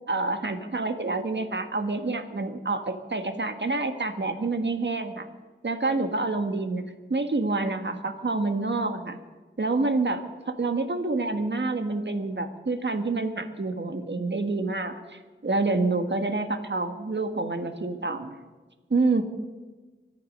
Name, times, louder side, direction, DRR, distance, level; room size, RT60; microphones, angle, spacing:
voice 1, 0.1-5.3 5.6-6.8 7.1-9.2 9.6-18.4 18.9-19.2, right 3 dB, 60° right, 7 dB, 1.5 m, -27 dB
24.5 x 10.5 x 5.4 m, 1.3 s
wide cardioid pair, 45°, 21 cm